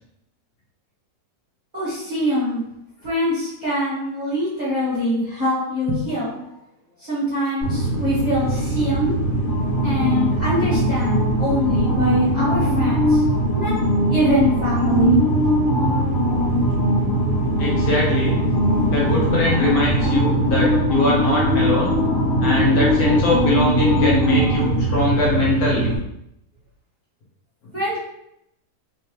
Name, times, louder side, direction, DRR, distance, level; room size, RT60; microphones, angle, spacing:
voice 1, 1.7-2.6 3.0-6.5 7.0-9.2 9.8-13.2 13.5-13.7 14.1-15.2 27.7-28.0, equal, 25° right, -9 dB, 1.2 m, -24 dB
sound 1, 7.6-26.0, equal, 50° left, 1.8 m, -20 dB
voice 2, 17.6-18.4 18.9-21.9 22.4-25.9, left 2 dB, 65° left, -4 dB, 1.3 m, -22 dB
3.3 x 3.0 x 3.0 m, 0.80 s
omnidirectional pair, 1.8 m